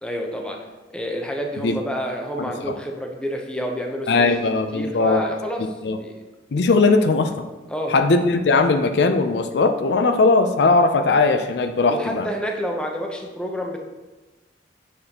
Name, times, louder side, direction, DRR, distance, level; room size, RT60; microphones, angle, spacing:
voice 1, 0.0-4.4 4.7-6.2 7.7-8.0 11.9-13.8, equal, 5° left, 1 dB, 0.6 m, -29 dB
voice 2, 4.1-5.2 5.8-6.0 6.5-7.3 7.9-12.3, left 3 dB, 65° left, 7 dB, 0.4 m, -19 dB
6.7 x 6.6 x 2.9 m, 1.2 s
head